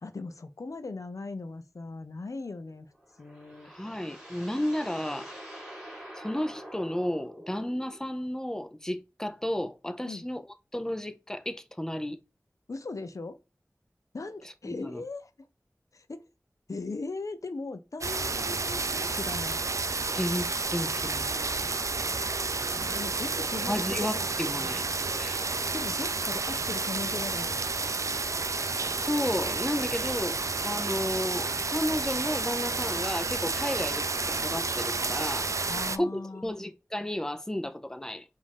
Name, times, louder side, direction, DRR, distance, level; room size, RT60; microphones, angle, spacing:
voice 1, 0.0-2.9 3.2-3.7 10.0-10.2 12.7-13.4 14.1-15.3 15.9-16.2 16.7-19.6 22.7-24.8 25.7-27.7 35.7-36.7, left 3 dB, 75° left, 0.5 m, -39 dB
sound 1, 2.9-8.1, equal, 10° right, 2.2 m, -46 dB
voice 2, 3.6-5.3 6.2-10.4 10.7-12.2 14.6-15.0 20.1-21.4 23.7-24.9 25.2-25.5 29.0-35.5 35.9-38.2, left 1 dB, 10° left, 0.6 m, -33 dB
sound 2, 18.0-36.0, right 3 dB, 65° right, 0.4 m, -30 dB
5.1 x 2.6 x 3.4 m
wide cardioid pair, 45°, 6 cm